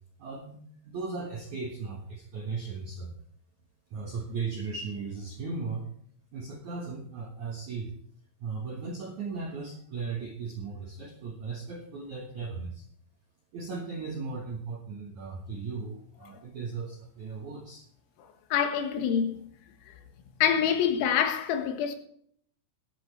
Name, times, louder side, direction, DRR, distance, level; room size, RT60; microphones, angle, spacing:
voice 1, 0.2-0.6 0.8-3.1 3.9-5.9 6.3-7.9 8.4-12.8 13.5-17.9, right 4 dB, 75° right, 1.7 m, -37 dB
voice 2, 18.5-19.5 20.4-22.0, left 8 dB, 85° left, 4.2 m, -26 dB
21.0 x 8.5 x 3.3 m
omnidirectional pair, 5.9 m